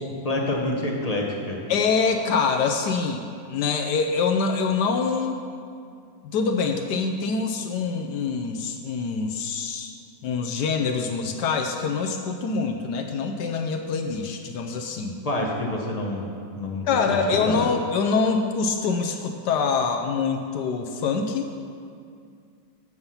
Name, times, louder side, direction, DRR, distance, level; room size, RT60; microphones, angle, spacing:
voice 1, 0.0-1.7 15.2-17.6, left 1 dB, 30° left, -1 dB, 0.7 m, -28 dB
voice 2, 1.7-5.4 6.2-9.9 10.2-15.2 16.9-21.5, left 5 dB, 70° left, 4 dB, 1.1 m, -25 dB
7.9 x 7.4 x 5.6 m, 2.4 s
omnidirectional pair, 2.0 m